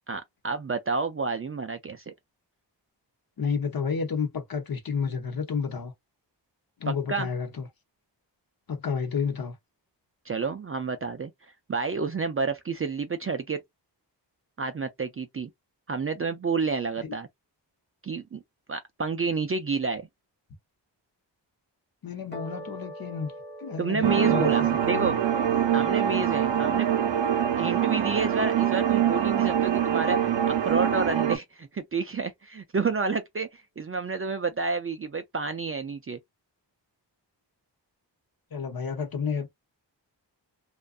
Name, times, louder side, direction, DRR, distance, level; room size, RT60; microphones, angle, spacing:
voice 1, 0.1-2.1 6.9-7.3 10.3-11.3 11.7-13.6 14.6-15.5 15.9-17.3 18.0-18.4 18.7-20.1 23.8-25.2 25.7-27.1 27.6-36.2, right 4 dB, 35° right, 0.4 m, -30 dB
voice 2, 3.4-5.9 6.8-7.7 8.7-9.5 17.0-17.1 22.0-23.3 23.6-24.5 38.5-39.5, left 5 dB, 55° left, 0.8 m, -30 dB
sound 1, 22.3-28.8, equal, 25° left, 0.9 m, -46 dB
sound 2, 24.0-31.4, right 9 dB, 75° right, 0.6 m, -24 dB
2.5 x 2.2 x 2.3 m
wide cardioid pair, 95°, 44 cm